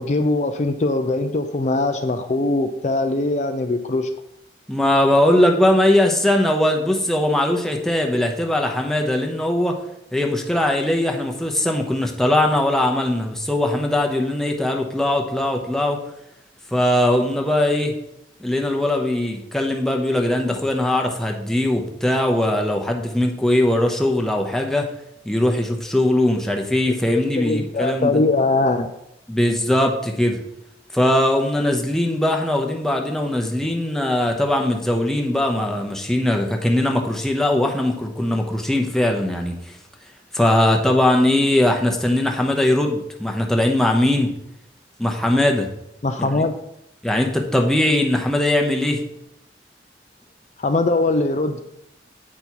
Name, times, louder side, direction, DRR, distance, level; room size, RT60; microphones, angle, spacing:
voice 1, 0.0-4.1 27.4-28.9 46.0-46.5 50.6-51.6, left 2 dB, 40° left, 7 dB, 0.4 m, -21 dB
voice 2, 4.7-9.8 10.1-16.0 16.7-18.0 18.4-24.9 25.3-28.2 29.3-30.4 30.9-39.8 40.3-44.3 45.0-45.7 46.2-46.3 47.0-49.0, left 1 dB, 5° left, 1 dB, 0.8 m, -20 dB
8.4 x 5.2 x 4.6 m, 0.83 s
head